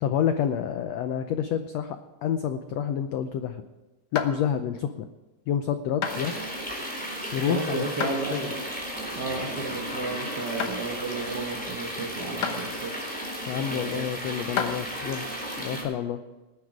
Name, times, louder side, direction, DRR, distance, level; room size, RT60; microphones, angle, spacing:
voice 1, 0.0-3.6 4.1-5.1 5.5-6.4 7.3-8.5 13.5-15.3 15.6-16.2, left 9 dB, 85° left, 9 dB, 1.4 m, -28 dB
sound 1, 1.8-3.5 4.2-4.7 5.3-5.5 6.0-6.3 6.9-7.4 8.0-8.2 8.7-8.8 9.5-9.6 10.1-10.2 10.6-10.8 11.5-11.6 12.4-12.6 13.4-13.5 14.3-14.8, left 7 dB, 65° left, 1.3 m, -32 dB
sound 2, 6.0-15.8, equal, 5° left, 3.6 m, -34 dB
voice 2, 7.5-8.5 9.1-13.0 13.6-14.1, right 3 dB, 80° right, 1 dB, 0.9 m, -33 dB
19.0 x 9.8 x 5.0 m, 1.1 s
omnidirectional pair, 3.9 m